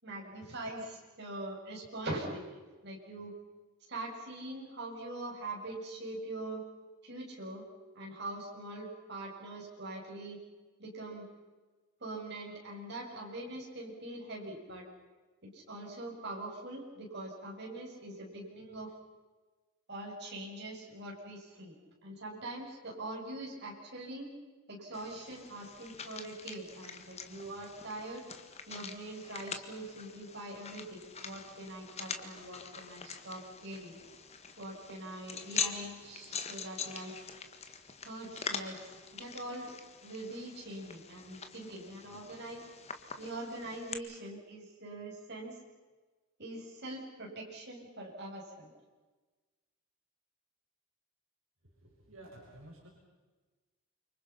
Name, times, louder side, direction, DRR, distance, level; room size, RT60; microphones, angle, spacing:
voice 1, 0.0-3.4 3.9-6.6 7.0-7.6 7.9-10.4 10.8-11.3 12.0-14.8 15.4-18.9 19.9-21.8 22.0-24.3 24.7-28.2 28.7-34.0 34.6-37.1 38.0-38.8 39.1-39.7 40.0-42.7 43.2-45.5 46.4-48.7, right 1 dB, 50° right, -2 dB, 7.5 m, -43 dB
sound 1, 24.9-43.9, left 6 dB, 30° left, 1.9 m, -44 dB
voice 2, 51.6-52.9, right 1 dB, 70° right, -2 dB, 6.2 m, -53 dB
29.5 x 26.0 x 5.9 m, 1.3 s
head